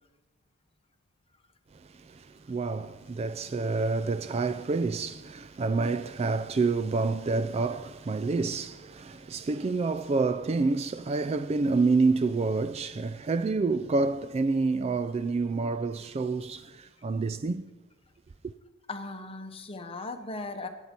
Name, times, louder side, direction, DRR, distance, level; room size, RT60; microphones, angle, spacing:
voice 1, 1.9-17.7, right 3 dB, 30° right, 0.3 m, -28 dB
voice 2, 18.9-20.7, left 3 dB, 25° left, 0.9 m, -38 dB
18.5 x 8.1 x 4.4 m
head